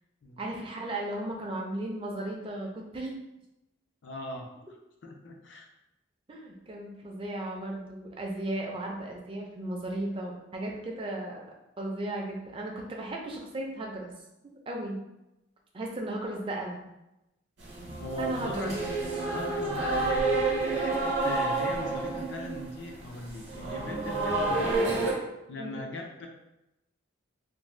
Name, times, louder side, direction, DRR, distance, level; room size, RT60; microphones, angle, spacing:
voice 1, 0.4-3.1 6.3-11.5 11.8-14.1 14.7-15.0 15.7-16.8 18.2-18.7 25.6-25.8, right 1 dB, 25° right, 0 dB, 0.4 m, -35 dB
voice 2, 4.0-5.7 18.0-18.8 19.2-25.2 25.5-26.3, left 1 dB, 65° left, 2 dB, 0.4 m, -40 dB
sound 1, 17.6-25.1, right 2 dB, 60° right, 0.7 m, -29 dB
2.5 x 2.1 x 3.1 m, 0.92 s
head